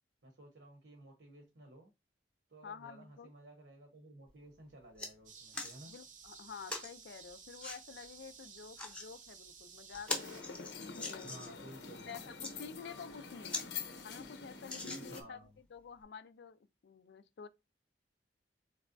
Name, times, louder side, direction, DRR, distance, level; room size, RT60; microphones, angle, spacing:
voice 1, 0.2-1.9 2.5-5.9 11.2-12.3 15.1-15.5, right 1 dB, 90° right, 0.9 m, -55 dB
voice 2, 2.6-3.3 5.9-11.6 12.1-13.7 14.0-17.5, left 6 dB, 65° left, 0.4 m, -50 dB
sound 1, 4.3-4.4 4.7-5.1 5.5-5.8 6.7-6.9 7.6-7.8 8.6-9.1 9.5-9.6 9.9-11.6 12.2-12.5 13.1-13.2 13.5-13.7 14.0-14.1 14.6-15.4 16.0-16.1, left 2 dB, 5° left, 0.8 m, -42 dB
sound 2, 5.3-10.4, right 6 dB, 50° right, 0.7 m, -55 dB
sound 3, 10.1-15.2, left 5 dB, 85° left, 0.8 m, -46 dB
4.0 x 3.2 x 2.6 m
head